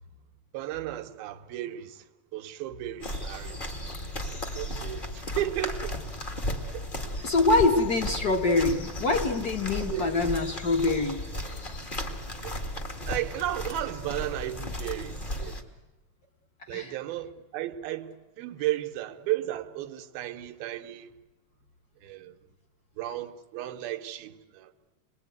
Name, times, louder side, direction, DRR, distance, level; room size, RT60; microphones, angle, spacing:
voice 1, 0.5-2.1 2.3-3.6 4.6-6.0 6.7-6.8 7.2-7.3 9.9-10.1 12.4-12.6 13.1-15.5 16.7-21.1 22.0-22.4 23.0-24.7, right 13 dB, 85° right, 2.9 m, -34 dB
sound 1, 3.0-15.6, left 1 dB, 30° left, 1.0 m, -35 dB
voice 2, 7.2-11.2 16.7-16.9, left 3 dB, 45° left, 1.3 m, -24 dB
28.5 x 21.0 x 9.4 m
omnidirectional pair, 4.2 m